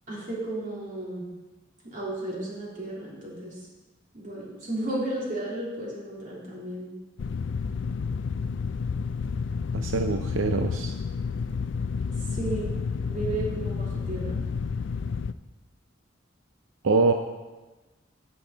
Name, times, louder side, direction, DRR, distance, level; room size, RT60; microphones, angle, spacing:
voice 1, 0.1-1.2 1.8-3.5 4.1-6.9 12.3-12.7 13.1-14.4, right 1 dB, 45° right, -5 dB, 3.4 m, -33 dB
sound 1, 7.2-15.3, left 5 dB, 65° left, 0.4 m, -30 dB
voice 2, 9.7-10.9 16.8-17.1, right 3 dB, 85° right, 5 dB, 0.6 m, -24 dB
11.5 x 8.6 x 4.0 m, 1.2 s
head